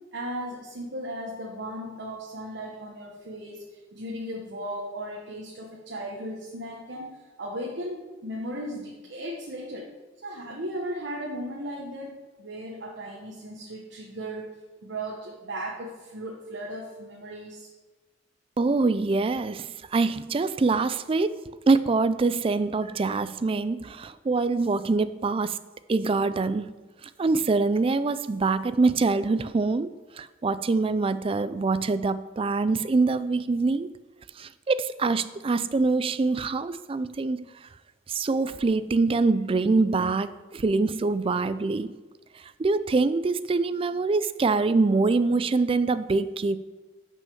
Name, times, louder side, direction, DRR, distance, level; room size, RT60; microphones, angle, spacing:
voice 1, 0.1-9.9 10.2-14.5 14.8-17.7, equal, 60° right, -2 dB, 1.1 m, -36 dB
voice 2, 18.6-25.6 25.9-26.7 27.2-33.9 34.4-37.4 38.1-41.9 42.6-46.6, right 3 dB, 30° right, 14 dB, 0.3 m, -24 dB
6.0 x 5.6 x 6.9 m, 1.2 s
head